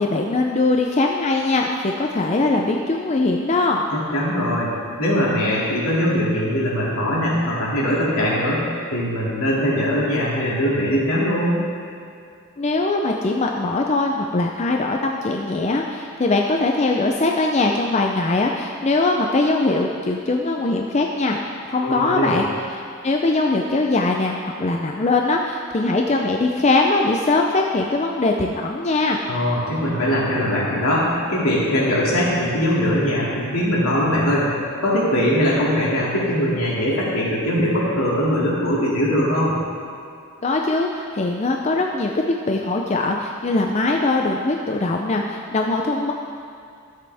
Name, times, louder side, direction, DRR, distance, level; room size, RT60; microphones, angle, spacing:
voice 1, 0.0-3.8 12.6-21.4 21.7-22.5 22.7-29.2 40.4-46.1, left 2 dB, 30° left, 1 dB, 0.4 m, -21 dB
voice 2, 3.9-4.7 5.0-11.6 21.8-22.4 29.2-34.5 34.8-39.6, equal, 80° left, -6 dB, 2.5 m, -21 dB
13.0 x 7.7 x 3.5 m, 2.4 s
head